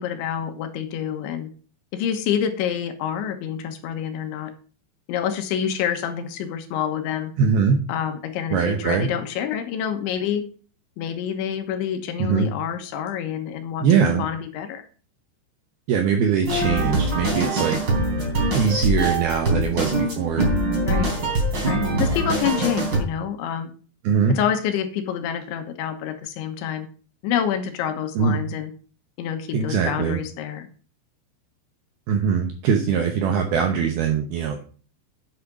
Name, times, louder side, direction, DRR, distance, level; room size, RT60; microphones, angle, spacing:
voice 1, 0.0-1.5 1.9-4.5 5.1-7.3 7.9-10.4 11.0-14.8 20.9-21.1 21.7-23.7 24.3-26.9 27.2-28.7 29.2-30.7, left 9 dB, 75° left, 7 dB, 3.4 m, -27 dB
voice 2, 7.4-7.8 8.5-9.1 12.2-12.5 13.8-14.2 15.9-17.8 18.5-20.5 24.0-24.4 28.2-28.4 29.5-30.2 32.1-34.6, right 6 dB, 80° right, 5 dB, 2.2 m, -21 dB
sound 1, 16.4-23.0, right 1 dB, 25° right, 3.4 m, -23 dB
8.8 x 8.5 x 5.2 m, 0.40 s
omnidirectional pair, 5.7 m